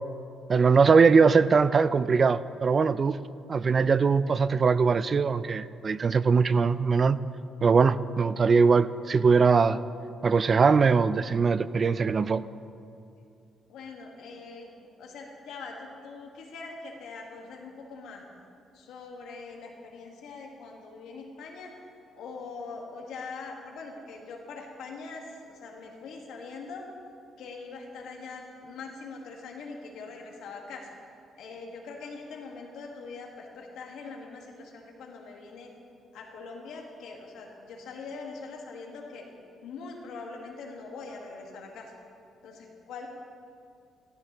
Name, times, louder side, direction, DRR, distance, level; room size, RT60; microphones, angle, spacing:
voice 1, 0.5-3.2 3.5-7.2 7.6-9.8 10.2-12.4, right 5 dB, 40° right, 15 dB, 0.3 m, -21 dB
voice 2, 13.7-18.2 18.7-21.7 22.1-26.8 27.4-30.9 31.4-35.7 36.1-39.3 39.6-41.9 42.4-43.1, left 4 dB, 80° left, 1 dB, 1.6 m, -42 dB
13.5 x 13.0 x 3.0 m, 2.5 s
cardioid pair, 90°, 0 cm